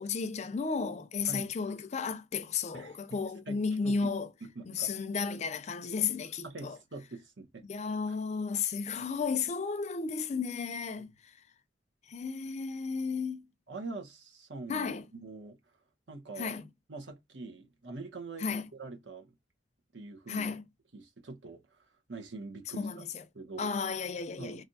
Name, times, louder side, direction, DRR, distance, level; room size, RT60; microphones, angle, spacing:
voice 1, 0.0-4.3 4.7-6.8 7.6-11.1 12.1-13.5 14.7-15.0 16.4-16.7 18.4-18.7 20.3-20.6 22.7-23.2 23.6-24.6, left 5 dB, 40° left, 0.4 m, -33 dB
voice 2, 2.7-3.2 3.5-4.1 4.4-4.9 5.3-5.4 6.4-7.6 9.0-9.1 13.7-15.6 16.1-16.5 16.9-19.3 19.9-20.5 20.9-23.0 23.3-23.7 24.4-24.6, right 3 dB, 85° right, 1.0 m, -44 dB
3.3 x 2.4 x 2.6 m
head